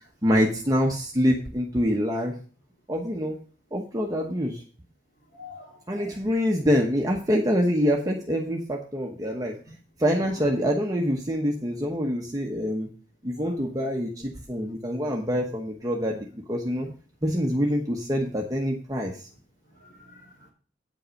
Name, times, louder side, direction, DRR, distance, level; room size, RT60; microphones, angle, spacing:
voice 1, 0.2-2.3 2.9-3.4 3.7-4.6 5.9-9.6 10.0-12.9 13.2-16.9 17.2-19.2, equal, 20° right, 0 dB, 1.0 m, -25 dB
voice 2, 5.3-6.2 9.4-9.5 10.2-10.5 13.4-13.6 16.8-16.9 19.8-20.5, left 2 dB, 65° left, -6 dB, 3.0 m, -47 dB
8.8 x 5.6 x 6.3 m, 0.39 s
head